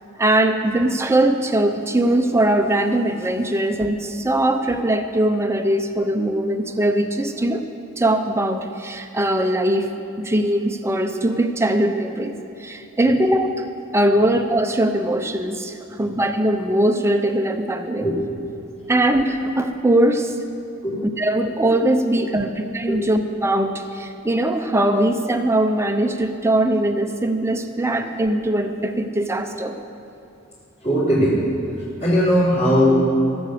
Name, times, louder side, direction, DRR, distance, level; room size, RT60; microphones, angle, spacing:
voice 1, 0.2-7.6 8.0-9.9 10.2-13.6 13.9-18.1 18.9-20.4 21.2-29.8, right 1 dB, 15° right, 6 dB, 0.7 m, -21 dB
voice 2, 30.8-31.4 32.0-33.1, equal, 35° left, -13 dB, 3.7 m, -18 dB
17.0 x 8.0 x 6.6 m, 2.7 s
head